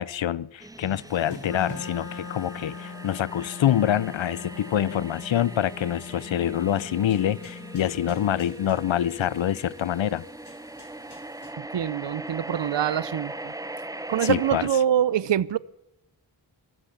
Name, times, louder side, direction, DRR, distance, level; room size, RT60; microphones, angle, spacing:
voice 1, 0.0-10.2 14.2-14.6, left 10 dB, 80° left, 21 dB, 0.6 m, -26 dB
sound 1, 0.6-14.7, right 1 dB, 10° right, 0.5 m, -40 dB
sound 2, 1.0-11.5, left 1 dB, 60° left, 3.4 m, -51 dB
Wind instrument woodwind instrument, 1.4-8.6, left 5 dB, 40° left, 1.3 m, -41 dB
voice 2, 11.6-13.5 14.1-15.6, right 9 dB, 70° right, 21 dB, 0.6 m, -25 dB
23.5 x 8.1 x 7.3 m, 0.89 s
wide cardioid pair, 95°, 45 cm